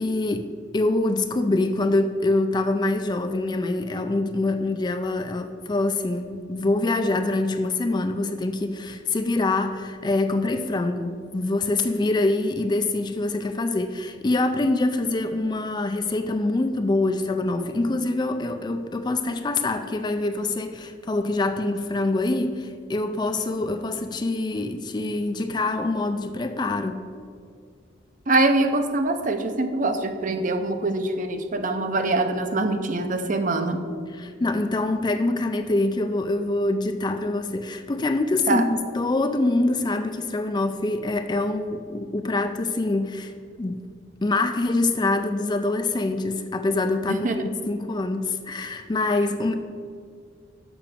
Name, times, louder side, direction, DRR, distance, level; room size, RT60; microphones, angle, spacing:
voice 1, 0.0-27.0 34.1-43.3 43.6-43.8 44.2-49.5, left 2 dB, 20° left, 7 dB, 0.4 m, -25 dB
voice 2, 28.3-33.8 38.5-38.7 47.1-47.4, right 2 dB, 40° right, 8 dB, 0.7 m, -24 dB
7.0 x 5.7 x 7.1 m, 2.1 s
head